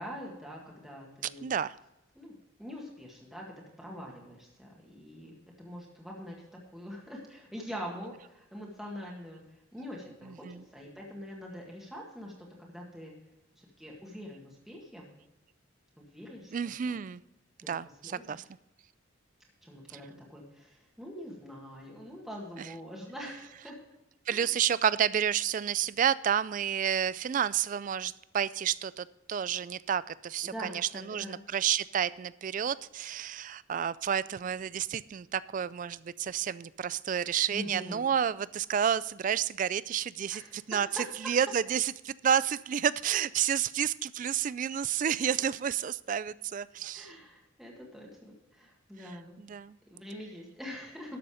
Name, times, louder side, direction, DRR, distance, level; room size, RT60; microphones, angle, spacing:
voice 1, 0.0-1.5 2.2-3.5 3.8-6.4 6.7-9.4 9.7-10.5 10.7-12.3 12.7-13.1 13.5-15.1 16.0-16.5 16.9-17.0 18.0-18.5 19.6-23.8 24.3-24.6 30.4-31.4 37.5-38.1 40.3-41.1 46.9-49.4 49.9-51.2, equal, ahead, -3 dB, 1.8 m, -44 dB
voice 2, 1.4-1.7 10.3-10.6 16.5-17.2 17.7-18.4 22.6-22.7 24.3-47.1 49.0-49.1 49.4-49.8, right 8 dB, 40° right, 19 dB, 0.3 m, -30 dB
12.5 x 6.8 x 5.0 m, 0.91 s
head